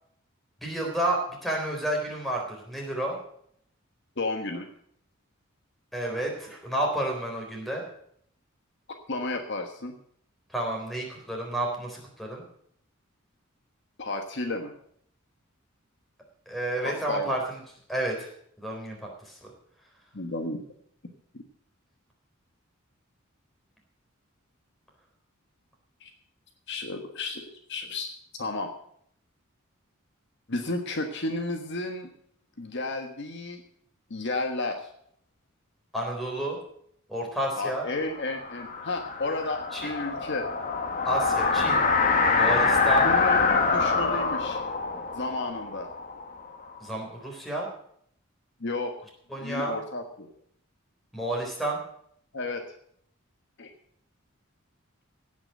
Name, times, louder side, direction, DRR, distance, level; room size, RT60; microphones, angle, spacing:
voice 1, 0.6-3.2 5.9-7.8 10.5-12.4 16.5-17.6 17.9-18.3 18.6-19.5 35.9-36.6 37.1-37.9 39.7-39.9 41.0-41.9 42.3-43.1 46.8-47.7 49.3-49.8 51.1-51.8, right 1 dB, ahead, -1 dB, 3.8 m, -30 dB
voice 2, 4.2-4.7 9.1-9.9 14.0-14.7 16.8-17.4 20.1-20.6 21.3-21.4 26.0-26.1 26.7-28.1 28.4-28.7 30.5-32.1 32.6-33.6 34.1-34.8 37.6-40.5 43.0-44.6 45.1-45.9 48.6-48.9 49.3-50.3 52.3-52.6 53.6-53.7, left 2 dB, 60° left, 4 dB, 1.5 m, -32 dB
sound 1, 38.0-46.8, left 4 dB, 40° left, 1.6 m, -25 dB
16.5 x 6.2 x 7.7 m, 0.67 s
head